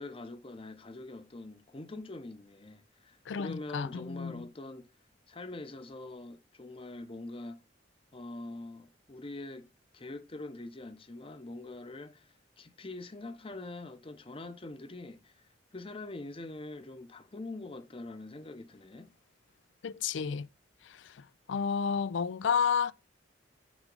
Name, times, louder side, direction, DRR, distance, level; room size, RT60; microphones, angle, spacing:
voice 1, 0.0-4.9 5.3-7.6 8.1-9.7 9.9-15.4 15.7-19.1, left 2 dB, 30° left, 0.8 m, -44 dB
voice 2, 3.3-4.4 19.8-20.5 20.8-21.2 21.5-22.9, left 6 dB, 75° left, 0.4 m, -31 dB
6.2 x 3.7 x 5.3 m
head